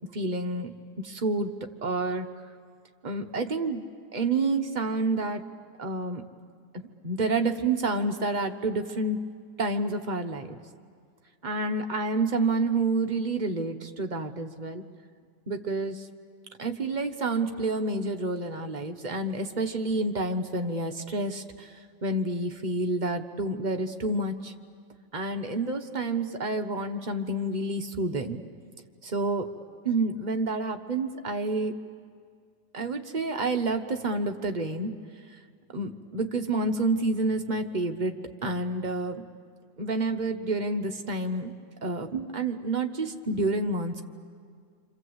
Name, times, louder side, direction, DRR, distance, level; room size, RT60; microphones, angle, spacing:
voice 1, 0.1-0.7 1.0-1.5 1.8-2.3 3.0-3.8 4.1-5.4 5.8-6.2 6.7-9.2 9.6-10.6 11.4-14.8 15.5-16.1 16.6-21.7 22.0-24.5 25.1-28.4 29.0-29.4 29.8-31.7 32.7-34.9 35.7-38.1 38.4-39.2 39.8-41.5 41.8-44.0, right 2 dB, 30° right, 4 dB, 1.0 m, -29 dB
27.5 x 26.0 x 8.0 m, 2.1 s
omnidirectional pair, 2.0 m